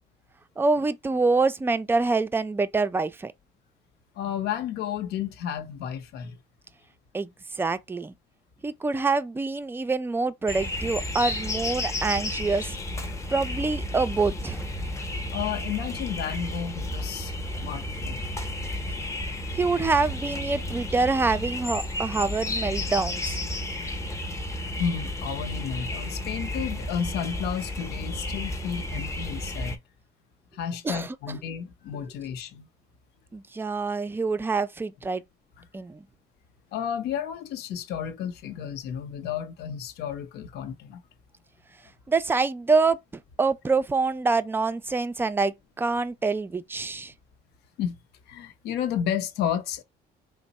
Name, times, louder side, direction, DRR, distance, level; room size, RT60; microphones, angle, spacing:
voice 1, 0.6-3.3 7.1-7.3 7.6-8.1 8.6-12.8 13.3-14.6 19.5-23.4 30.8-31.1 33.3-35.2 35.7-36.0 42.1-43.0 43.4-47.1, right 3 dB, 15° right, 0.4 m, -26 dB
voice 2, 4.2-6.4 15.3-17.3 17.6-18.3 24.7-29.8 30.5-32.7 35.6-35.7 36.7-41.0 47.8-47.9 48.3-49.8, left 8 dB, 80° left, 0.8 m, -32 dB
sound 1, 10.5-29.8, left 1 dB, 15° left, 0.7 m, -32 dB
3.4 x 2.1 x 4.1 m
cardioid pair, 110°, 17 cm